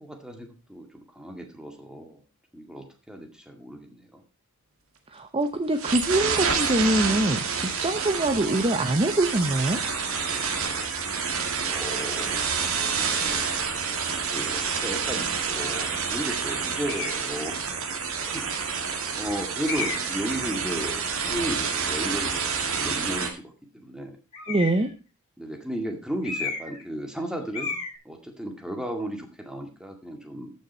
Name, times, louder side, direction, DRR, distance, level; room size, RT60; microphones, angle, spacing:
voice 1, 0.0-2.2 2.5-4.2 7.9-8.1 11.7-12.5 14.1-17.6 18.3-18.5 19.1-24.2 25.4-27.8 28.0-30.5, right 1 dB, 5° right, 3 dB, 2.1 m, -35 dB
voice 2, 5.1-9.8 24.5-24.9, right 1 dB, 25° right, 7 dB, 0.8 m, -24 dB
sound 1, 5.8-23.3, right 5 dB, 70° right, 2.0 m, -28 dB
sound 2, 16.9-17.3 18.1-18.2 19.6-20.2 24.3-24.9 26.2-26.8 27.1-27.3 27.5-27.9, left 5 dB, 30° left, 6.8 m, -32 dB
14.0 x 6.4 x 4.4 m, 0.33 s
head